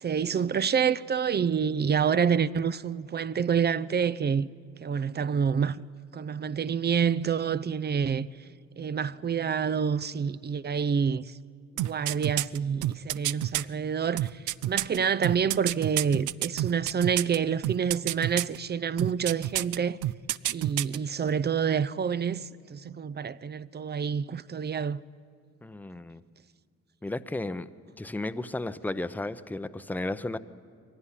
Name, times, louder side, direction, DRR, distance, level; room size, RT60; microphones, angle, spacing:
voice 1, 0.0-4.5 4.8-5.8 6.1-8.3 8.8-11.4 11.8-20.0 20.5-25.0, right 7 dB, 35° right, 0.5 m, -28 dB
sound 1, 11.8-13.6 14.2-17.4 17.6-18.6 19.0-19.8 20.0-21.0 21.3-21.4, right 15 dB, 80° right, 0.5 m, -28 dB
voice 2, 25.6-26.2 27.0-27.7 28.0-30.4, left 2 dB, 5° left, 0.7 m, -34 dB
22.5 x 16.5 x 10.0 m
cardioid pair, 90°, 30 cm